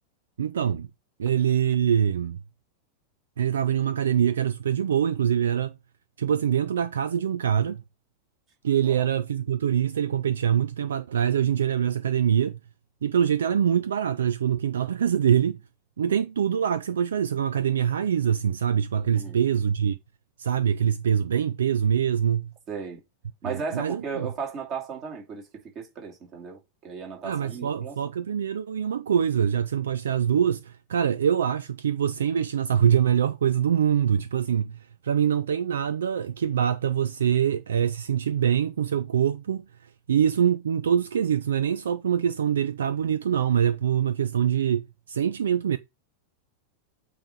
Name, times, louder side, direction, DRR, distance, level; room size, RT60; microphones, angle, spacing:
voice 1, 0.4-0.9 1.2-2.4 3.4-5.8 6.2-7.8 8.6-12.6 13.0-15.6 16.0-20.0 20.4-22.5 23.5-24.3 27.2-44.8 45.1-45.8, right 8 dB, 65° right, 0.4 m, -24 dB
voice 2, 22.7-23.0 23.4-25.5 25.7-28.0, right 5 dB, 35° right, 2.5 m, -35 dB
8.7 x 3.2 x 5.1 m
figure-of-eight pair, 90°, 0 cm